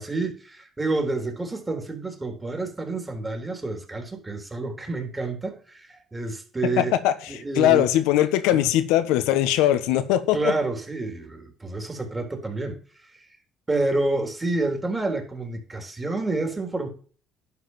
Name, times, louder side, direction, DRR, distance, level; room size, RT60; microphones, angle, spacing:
voice 1, 0.0-7.0 7.3-7.9 8.5-8.7 10.3-12.8 13.1-13.2 13.7-16.9, right 2 dB, 20° right, 3.8 m, -29 dB
voice 2, 6.8-10.5, left 13 dB, 90° left, 1.1 m, -21 dB
11.5 x 4.8 x 7.5 m
supercardioid pair, 80°, 0 cm